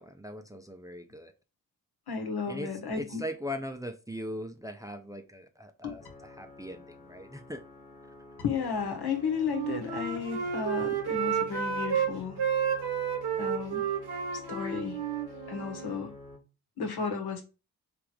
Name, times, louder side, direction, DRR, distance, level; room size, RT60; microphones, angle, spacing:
voice 1, 0.0-1.3 2.5-7.6, equal, 10° right, 0.6 m, -40 dB
voice 2, 2.1-3.2 5.8-5.9 8.4-12.4 13.4-13.9 14.5-15.0 15.5-16.1 16.8-17.4, left 6 dB, 70° left, 1.3 m, -33 dB
sound 1, 6.0-16.4, left 2 dB, 20° left, 1.2 m, -49 dB
Wind instrument woodwind instrument, 9.4-12.1 12.4-16.0, right 7 dB, 70° right, 1.1 m, -31 dB
3.5 x 3.0 x 4.6 m
cardioid pair, 55°, 40 cm